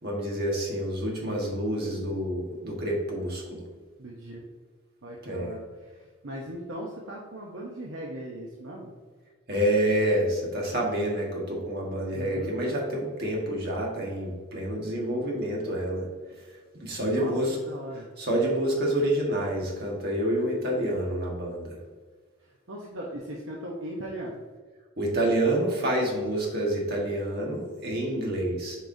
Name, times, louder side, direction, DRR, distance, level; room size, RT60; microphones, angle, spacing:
voice 1, 0.0-3.6 5.2-5.5 9.5-16.1 16.8-17.6 18.2-21.7 25.0-28.9, right 1 dB, 50° right, -2 dB, 1.5 m, -28 dB
voice 2, 1.5-1.9 4.0-4.5 5.0-8.9 12.1-12.5 17.2-17.3 17.6-18.1 22.4-24.4, right 1 dB, 65° right, -2 dB, 0.8 m, -39 dB
8.4 x 4.8 x 2.7 m, 1.4 s
head